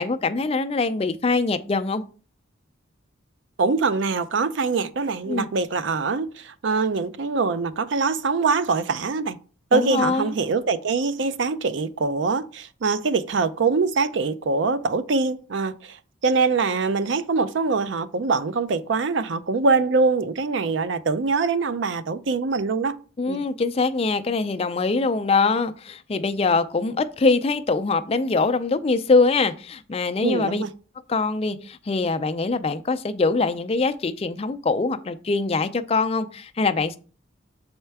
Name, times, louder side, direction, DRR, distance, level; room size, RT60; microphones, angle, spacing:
voice 1, 0.0-2.0 5.3-5.5 9.7-10.3 23.2-30.6 31.1-37.0, left 3 dB, 30° left, 0.4 m, -23 dB
voice 2, 3.6-9.4 9.7-16.0 16.2-23.0 23.3-23.4 30.2-30.7, right 4 dB, 65° right, 0.5 m, -23 dB
6.5 x 4.4 x 3.4 m
head